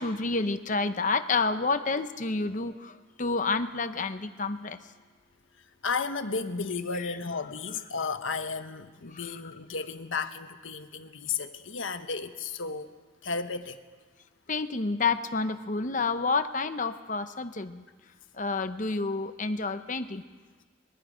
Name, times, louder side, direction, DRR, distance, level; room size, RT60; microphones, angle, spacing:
voice 1, 0.0-4.8 14.5-17.8 18.4-20.2, left 4 dB, 40° left, 9 dB, 0.9 m, -29 dB
voice 2, 5.8-12.9 13.2-13.8, left 4 dB, 75° left, 8 dB, 1.2 m, -33 dB
25.5 x 22.0 x 5.2 m, 1.4 s
head